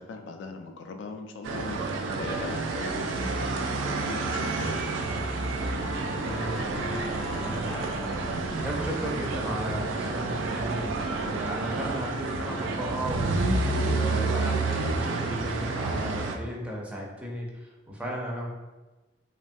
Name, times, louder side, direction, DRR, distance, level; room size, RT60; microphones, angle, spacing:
voice 1, 0.0-1.8 2.1-4.9, left 4 dB, 70° left, 5 dB, 0.3 m, -40 dB
sound 1, 1.4-16.3, right 3 dB, 85° right, 0.3 m, -29 dB
sound 2, 1.6-1.9 2.5-4.1 4.3-6.6, equal, 70° right, 0.7 m, -46 dB
Wind instrument woodwind instrument, 3.4-10.8, left 2 dB, 40° left, 0.6 m, -43 dB
voice 2, 6.2-18.5, equal, 5° right, -3 dB, 0.5 m, -35 dB
3.1 x 2.2 x 2.5 m, 1.1 s
head